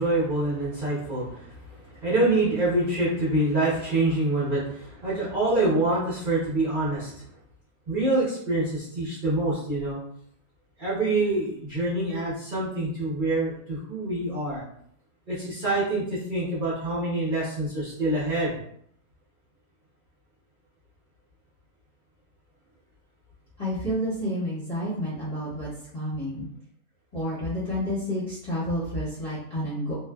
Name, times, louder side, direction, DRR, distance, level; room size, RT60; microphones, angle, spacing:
voice 1, 0.0-7.2 7.9-10.0 10.8-14.6 15.3-18.5, right 2 dB, 40° right, -10 dB, 0.9 m, -26 dB
voice 2, 23.6-26.5 27.1-29.9, equal, 30° left, -11 dB, 0.8 m, -30 dB
2.6 x 2.3 x 2.2 m, 0.68 s
omnidirectional pair, 1.7 m